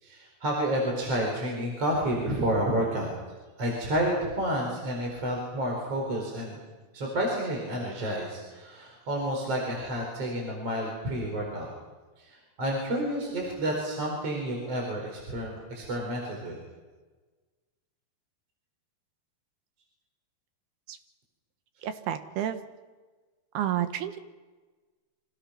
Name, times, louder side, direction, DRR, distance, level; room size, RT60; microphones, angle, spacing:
voice 1, 0.0-3.1 3.6-6.6 6.9-11.7 12.2-16.6, right 1 dB, 40° right, 0 dB, 5.4 m, -30 dB
voice 2, 21.8-22.6 23.5-24.2, right 11 dB, 80° right, 8 dB, 3.3 m, -30 dB
29.0 x 26.0 x 5.8 m, 1.3 s
omnidirectional pair, 4.6 m